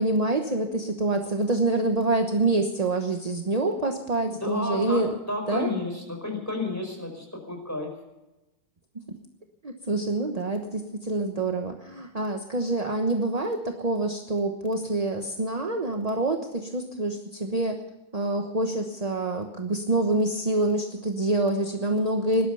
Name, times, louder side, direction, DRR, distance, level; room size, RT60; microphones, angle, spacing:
voice 1, 0.0-5.1 5.5-5.7 9.6-17.8 18.1-22.5, right 2 dB, 30° right, 3 dB, 0.8 m, -26 dB
voice 2, 4.4-7.9, left 2 dB, 5° left, 2 dB, 4.9 m, -31 dB
19.5 x 12.0 x 5.6 m, 0.99 s
omnidirectional pair, 2.2 m